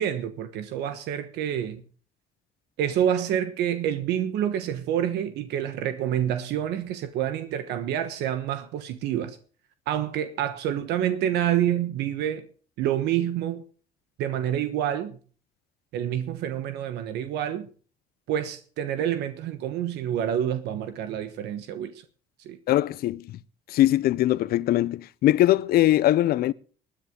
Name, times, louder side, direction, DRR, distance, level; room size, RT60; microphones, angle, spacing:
voice 1, 0.0-1.8 2.8-9.4 9.9-12.5 12.8-13.6 14.2-15.2 15.9-17.7 18.3-21.9 22.4-22.6, right 10 dB, 85° right, 1.2 m, -27 dB
voice 2, 22.7-23.4 23.7-26.5, left 14 dB, 65° left, 0.6 m, -21 dB
20.0 x 10.5 x 3.7 m
cardioid pair, 110°, 17 cm